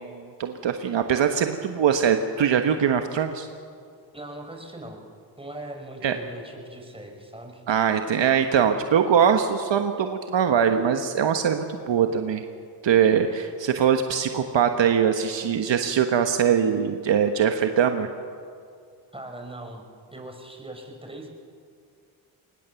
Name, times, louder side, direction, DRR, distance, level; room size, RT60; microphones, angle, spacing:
voice 1, 0.0-3.5 6.0-6.2 7.7-12.4 12.8-18.1, right 7 dB, 65° right, 6 dB, 1.4 m, -22 dB
voice 2, 4.1-5.0 5.4-7.6 19.1-21.3, right 1 dB, 10° right, 2 dB, 5.7 m, -40 dB
24.5 x 20.0 x 7.1 m, 2.2 s
supercardioid pair, 50°, 47 cm